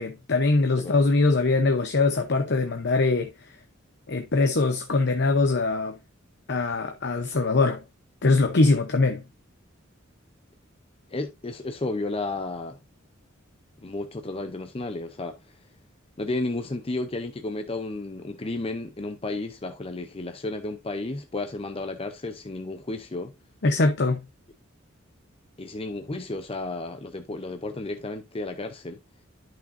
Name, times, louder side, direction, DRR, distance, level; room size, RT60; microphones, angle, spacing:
voice 1, 0.0-3.3 4.1-6.0 6.5-7.8 8.2-9.2 23.6-24.2, left 3 dB, 60° left, 0.9 m, -22 dB
voice 2, 11.1-12.8 13.8-15.6 16.2-23.3 25.6-29.0, left 2 dB, 30° left, 0.7 m, -32 dB
11.0 x 6.0 x 2.7 m
head